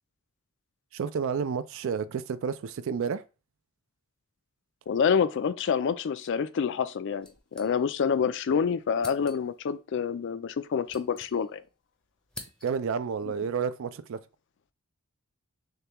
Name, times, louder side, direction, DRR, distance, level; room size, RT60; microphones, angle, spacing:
voice 1, 0.9-3.2 12.6-14.2, right 6 dB, 65° right, 0.4 m, -30 dB
voice 2, 4.9-11.6, left 6 dB, 55° left, 0.4 m, -27 dB
sound 1, 7.2-8.2 8.5-8.6 9.0-9.7 10.5-11.8 12.0-13.0, left 1 dB, 5° left, 0.6 m, -48 dB
6.5 x 2.3 x 2.9 m
head